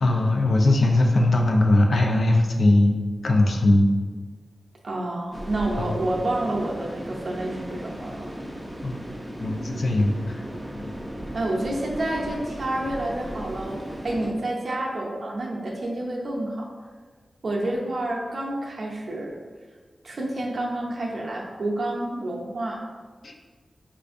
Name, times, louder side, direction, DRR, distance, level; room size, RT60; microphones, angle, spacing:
voice 1, 0.0-3.9 5.8-5.9 8.8-9.1 9.4-10.2 10.8-10.9 23.2-23.3, left 2 dB, 75° left, 1 dB, 0.4 m, -20 dB
voice 2, 4.8-8.2 11.3-13.8 14.0-16.6 17.4-19.3 20.0-22.8, right 1 dB, 70° right, -2 dB, 0.5 m, -29 dB
windy wood, 5.3-14.3, right 1 dB, 10° right, 0.5 m, -36 dB
4.4 x 2.5 x 2.5 m, 1.4 s
wide cardioid pair, 70°, 0 cm